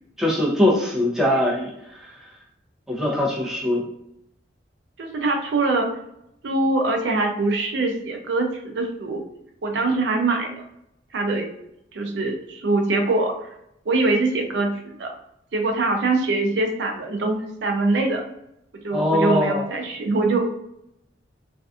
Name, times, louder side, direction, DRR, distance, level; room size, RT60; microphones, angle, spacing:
voice 1, 0.2-2.0 2.9-3.8 18.9-19.7, left 1 dB, 5° right, -4 dB, 0.5 m, -22 dB
voice 2, 5.0-5.9 6.4-9.2 9.6-10.6 11.1-11.5 11.9-13.5 13.9-15.1 15.5-18.2 18.7-20.5, right 2 dB, 65° right, 3 dB, 0.4 m, -23 dB
2.5 x 2.3 x 2.4 m, 0.79 s
head